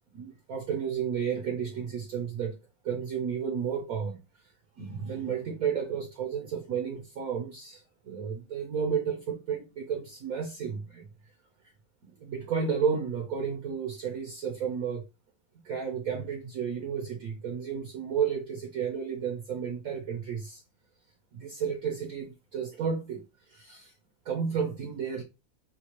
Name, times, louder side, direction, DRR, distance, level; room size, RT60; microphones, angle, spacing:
voice 1, 0.1-2.5 2.8-4.5 4.8-11.1 12.0-15.0 15.6-20.6 21.3-23.2 23.5-23.9 24.2-25.2, right 7 dB, 60° right, 1.0 m, -32 dB
4.1 x 2.3 x 3.0 m
omnidirectional pair, 2.1 m